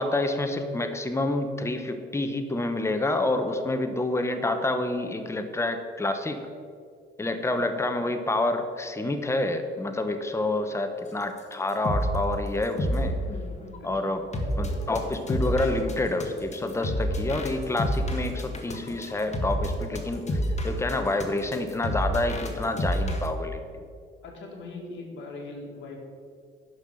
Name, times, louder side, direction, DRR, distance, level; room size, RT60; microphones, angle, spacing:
voice 1, 0.0-6.4 7.2-13.1 13.8-14.2 14.6-23.8, left 2 dB, 15° left, 7 dB, 0.9 m, -28 dB
sound 1, 11.4-11.5 11.7-12.2 12.6-23.3, equal, 35° left, 1.6 m, -29 dB
voice 2, 13.8-14.1 24.2-26.0, left 3 dB, 70° left, -1 dB, 2.2 m, -40 dB
10.5 x 5.7 x 6.4 m, 2.2 s
cardioid pair, 90°, 20 cm